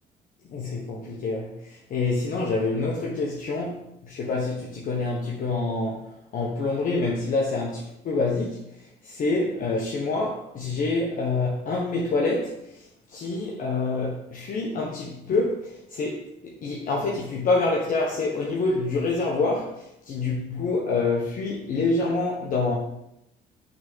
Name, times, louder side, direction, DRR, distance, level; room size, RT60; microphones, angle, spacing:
voice 1, 0.5-6.0 6.3-8.6 9.0-12.5 13.1-16.2 16.6-22.8, left 3 dB, 55° left, -3 dB, 1.2 m, -26 dB
6.3 x 3.7 x 5.5 m, 0.83 s
cardioid pair, 110°, 17 cm